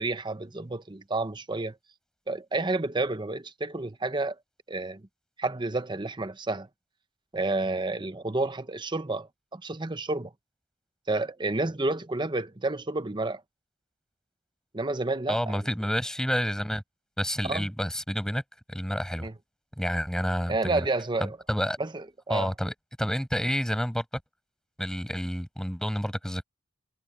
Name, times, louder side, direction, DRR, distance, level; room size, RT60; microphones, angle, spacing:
voice 1, 0.0-1.8 2.3-4.4 4.7-5.1 5.4-6.7 7.3-10.3 11.1-13.4 14.7-15.6 17.4-17.7 19.2-19.3 20.5-21.4 21.8-22.5, right 2 dB, 25° right, 0.9 m, -30 dB
voice 2, 15.3-16.8 17.2-18.4 18.7-19.3 19.8-20.8 21.2-21.8 22.3-24.0 24.8-26.4, equal, 5° left, 6.4 m, -29 dB
head